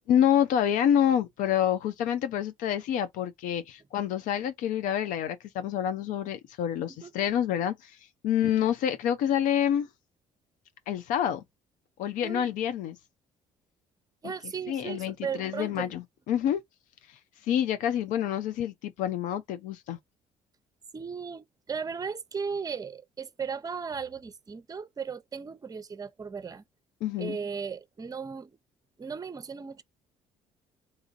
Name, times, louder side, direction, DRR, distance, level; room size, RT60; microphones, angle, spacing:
voice 1, 0.1-8.0 8.2-9.9 10.9-11.4 12.0-13.0 14.7-16.0 16.3-16.6 17.5-20.0 27.0-27.4, left 10 dB, 75° left, 0.5 m, -27 dB
voice 2, 14.2-15.9 20.9-26.6 27.2-28.6 29.0-29.8, right 6 dB, 25° right, 0.6 m, -36 dB
4.0 x 2.5 x 2.4 m
supercardioid pair, 70°, 13 cm